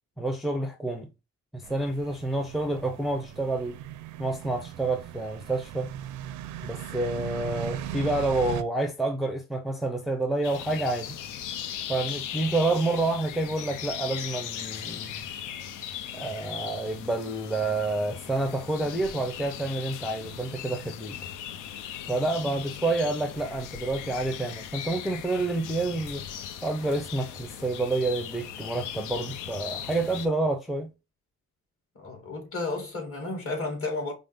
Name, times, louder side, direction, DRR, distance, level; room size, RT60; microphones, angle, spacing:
voice 1, 0.2-1.1 1.5-3.8 4.2-5.9 6.6-11.2 11.9-15.2 16.1-21.2 22.1-26.2 26.6-30.9, right 2 dB, ahead, 0.5 m, -28 dB
sound 1, 1.6-8.6, right 11 dB, 80° right, 0.5 m, -38 dB
sound 2, 10.4-30.3, left 9 dB, 85° left, 0.6 m, -38 dB
voice 2, 32.0-34.1, left 3 dB, 45° left, 2.1 m, -33 dB
5.2 x 2.0 x 3.4 m
cardioid pair, 90°, 30 cm